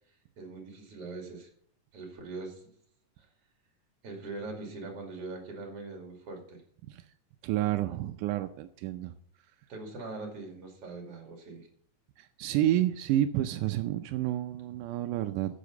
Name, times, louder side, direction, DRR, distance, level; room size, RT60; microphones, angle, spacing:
voice 1, 0.4-1.5 1.9-2.7 4.0-6.6 9.7-11.7, right 3 dB, 50° right, 1 dB, 3.3 m, -42 dB
voice 2, 7.4-9.1 12.2-15.6, right 13 dB, 90° right, 8 dB, 2.1 m, -30 dB
10.0 x 7.1 x 6.6 m, 0.63 s
omnidirectional pair, 3.5 m